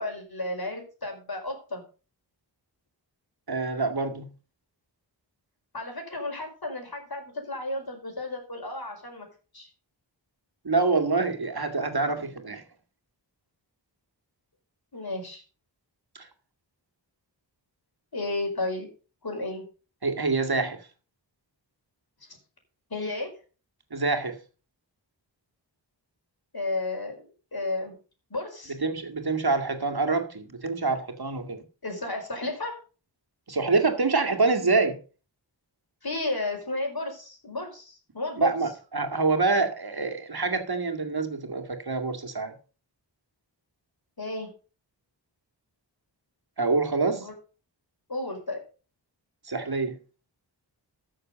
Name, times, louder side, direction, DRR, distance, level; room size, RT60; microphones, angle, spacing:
voice 1, 0.0-1.8 5.7-9.3 9.5-9.7 14.9-15.4 18.1-18.9 19.2-19.6 22.9-23.3 26.5-27.3 27.5-27.9 28.3-28.8 31.8-32.8 36.0-38.5 44.2-44.5 47.1-47.3 48.1-48.6, left 2 dB, 55° left, 4.7 m, -33 dB
voice 2, 3.5-4.3 10.6-12.6 16.1-16.3 20.0-20.8 23.9-24.4 28.7-31.6 33.5-35.0 38.4-42.6 46.6-47.3 49.4-50.0, right 3 dB, 55° right, 2.2 m, -26 dB
13.5 x 6.7 x 5.3 m
wide cardioid pair, 60°, 45 cm